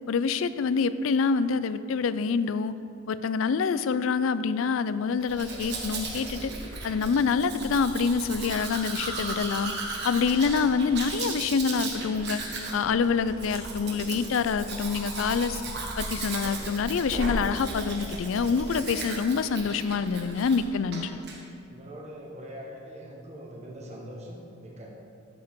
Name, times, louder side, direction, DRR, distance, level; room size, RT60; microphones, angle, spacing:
voice 1, 0.1-2.7 3.1-6.5 6.8-9.7 10.0-12.4 12.7-15.6 16.0-21.2, left 5 dB, 70° left, 14 dB, 0.4 m, -26 dB
Domestic sounds home sounds, 5.2-20.6 20.9-21.4, right 2 dB, 55° right, 1.5 m, -36 dB
voice 2, 21.7-24.9, equal, 35° right, -2 dB, 1.3 m, -42 dB
12.5 x 7.4 x 3.7 m, 2.4 s
head